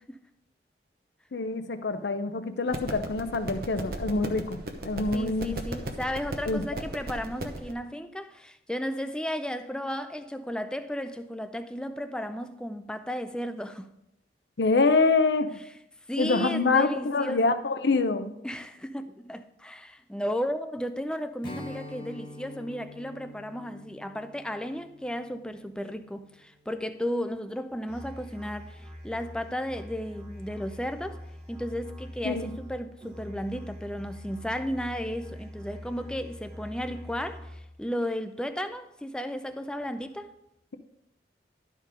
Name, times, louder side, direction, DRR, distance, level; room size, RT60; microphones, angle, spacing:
voice 1, 1.3-4.6 4.8-5.6 6.5-6.6 14.6-15.5 16.2-18.4 32.2-32.5, left 3 dB, 70° left, 0.6 m, -25 dB
sound 1, 2.7-7.7, right 1 dB, 55° right, 1.0 m, -36 dB
voice 2, 5.1-13.9 16.1-17.5 18.4-31.2 31.5-40.3, equal, 5° left, 0.4 m, -34 dB
Strum, 21.4-26.9, left 2 dB, 25° left, 0.9 m, -46 dB
Musical instrument, 27.9-37.8, equal, 35° right, 1.3 m, -44 dB
12.0 x 4.5 x 5.0 m
head